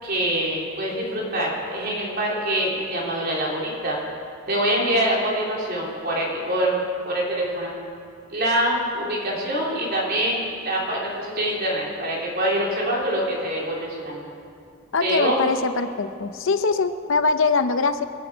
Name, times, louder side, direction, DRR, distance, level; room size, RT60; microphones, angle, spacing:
voice 1, 0.0-4.0 4.5-7.7 8.3-14.2 15.0-15.4, right 1 dB, 45° right, -4 dB, 3.7 m, -25 dB
voice 2, 14.9-18.1, left 4 dB, 60° left, 10 dB, 0.7 m, -22 dB
26.0 x 10.5 x 5.1 m, 2.5 s
head